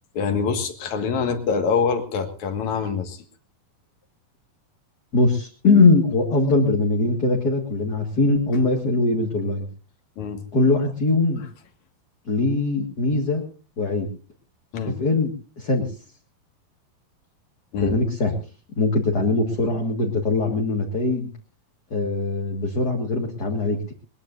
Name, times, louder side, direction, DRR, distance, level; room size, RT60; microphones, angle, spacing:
voice 1, 0.1-3.2 10.2-10.4 14.7-15.0 17.7-18.0, left 5 dB, 60° left, 7 dB, 3.0 m, -25 dB
voice 2, 5.1-9.7 10.5-11.4 12.3-13.4 13.8-14.1 14.9-15.9 17.8-18.3 18.8-21.3 21.9-23.9, left 3 dB, 35° left, 0 dB, 1.9 m, -21 dB
21.5 x 20.5 x 2.6 m, 0.37 s
omnidirectional pair, 4.1 m